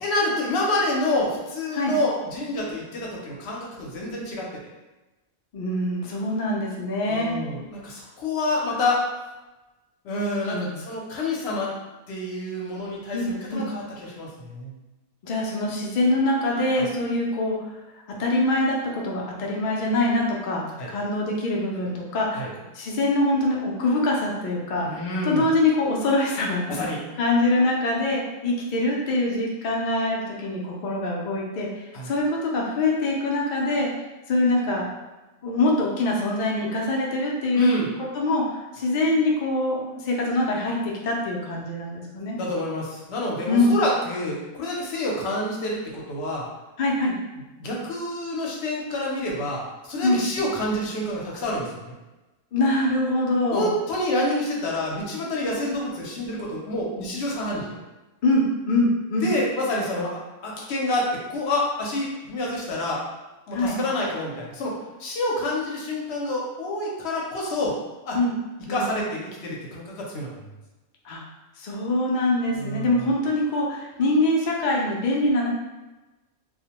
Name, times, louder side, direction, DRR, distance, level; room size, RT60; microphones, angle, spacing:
voice 1, 0.0-4.5 7.1-9.0 10.0-11.7 12.1-14.7 16.7-16.9 20.8-20.9 22.3-22.5 24.8-25.4 26.7-27.0 31.9-32.1 37.5-37.9 42.3-46.5 47.6-51.9 53.5-57.7 59.2-63.0 63.5-67.7 68.0-68.2 68.7-70.3 72.6-73.0, left 1 dB, 60° left, -2 dB, 0.8 m, -28 dB
voice 2, 5.5-7.3 10.5-10.7 13.1-13.6 15.2-17.6 18.2-22.5 22.7-26.7 27.2-33.9 34.3-34.9 35.4-37.7 38.1-42.4 43.5-43.7 46.8-47.1 50.0-50.2 52.5-53.7 58.2-59.3 63.5-63.8 68.1-68.3 68.7-68.8 71.0-71.2 71.6-75.5, left 2 dB, 85° left, -2 dB, 0.4 m, -24 dB
2.3 x 2.1 x 2.8 m, 1.1 s
omnidirectional pair, 1.4 m